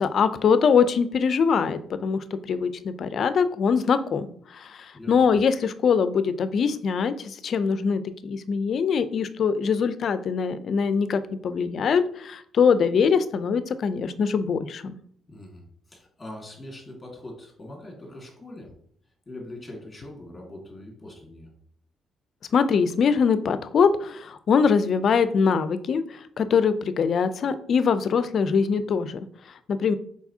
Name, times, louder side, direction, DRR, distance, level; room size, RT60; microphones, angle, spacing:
voice 1, 0.0-15.0 22.5-29.2 29.7-30.0, left 6 dB, 55° left, 12 dB, 0.4 m, -23 dB
voice 2, 4.9-5.2 15.3-18.7 19.3-21.5, left 1 dB, 25° left, 0 dB, 1.9 m, -42 dB
4.7 x 4.1 x 2.7 m, 0.63 s
cardioid pair, 90°, 0 cm